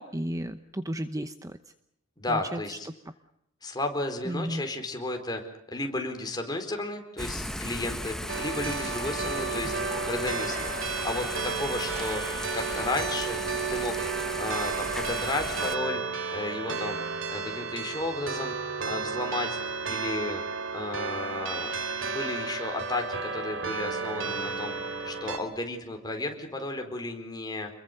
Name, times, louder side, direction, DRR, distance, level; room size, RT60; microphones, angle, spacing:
voice 1, 0.0-1.6 2.3-2.6 4.3-4.6, equal, 15° right, 10 dB, 0.9 m, -33 dB
voice 2, 2.2-2.9 3.6-5.4 5.7-9.8 10.1-10.7 11.0-12.2 12.5-13.4 13.7-13.9 14.4-17.0 17.3-19.5 19.9-20.4 20.7-21.7 22.0-27.7, left 2 dB, 20° left, 4 dB, 4.4 m, -33 dB
Thunder / Rain, 7.2-15.8, left 1 dB, ahead, 1.3 m, -36 dB
sound 1, 8.3-25.4, right 4 dB, 65° right, 3.0 m, -32 dB
28.5 x 22.0 x 6.8 m, 0.77 s
head